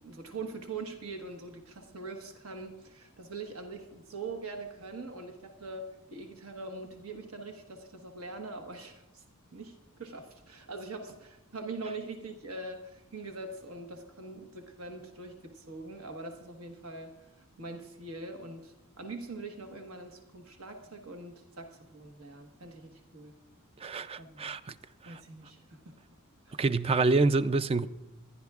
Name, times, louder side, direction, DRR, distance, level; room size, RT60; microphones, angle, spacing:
voice 1, 0.0-9.2 9.5-17.1 17.6-23.3 24.2-24.5 25.0-26.0 26.5-26.6, right 3 dB, 70° right, 1.3 m, -43 dB
voice 2, 23.8-24.7 25.0-25.2 26.6-27.9, right 3 dB, 25° right, 0.3 m, -27 dB
26.0 x 11.0 x 2.4 m
head